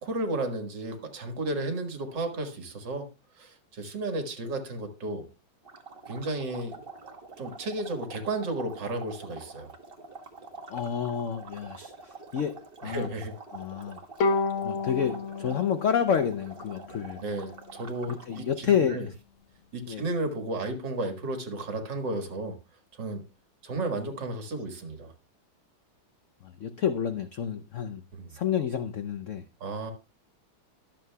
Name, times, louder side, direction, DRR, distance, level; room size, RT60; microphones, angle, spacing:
voice 1, 0.0-3.1 3.4-5.3 6.1-6.8 7.4-9.7 12.8-13.4 17.2-19.1 19.7-22.6 23.0-23.2 23.6-25.1 28.1-28.4 29.6-29.9, right 2 dB, 65° right, 2.4 m, -33 dB
sound 1, 5.6-18.5, right 3 dB, 35° right, 1.2 m, -46 dB
voice 2, 10.7-12.6 12.8-13.1 13.5-14.0 14.6-17.2 18.1-19.1 19.9-20.0 26.4-28.0 28.3-29.4, left 8 dB, 70° left, 0.7 m, -29 dB
Bowed string instrument, 14.2-17.5, left 3 dB, 90° left, 1.9 m, -31 dB
22.0 x 7.5 x 2.3 m
omnidirectional pair, 2.1 m